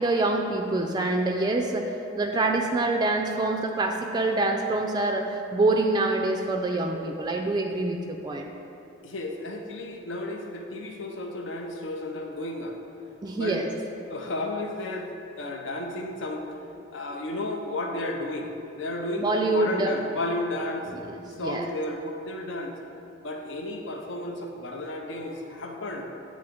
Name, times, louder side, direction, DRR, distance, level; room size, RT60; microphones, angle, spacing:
voice 1, 0.0-1.9 2.2-8.5 13.2-13.7 19.2-19.9 20.9-21.7, right 2 dB, 20° right, 3 dB, 0.3 m, -26 dB
voice 2, 9.0-12.8 13.4-13.6 14.1-15.1 15.4-16.4 16.9-18.5 18.8-20.9 21.3-22.7 23.2-26.0, left 1 dB, 75° left, 2 dB, 0.6 m, -33 dB
8.4 x 3.8 x 5.1 m, 2.9 s
head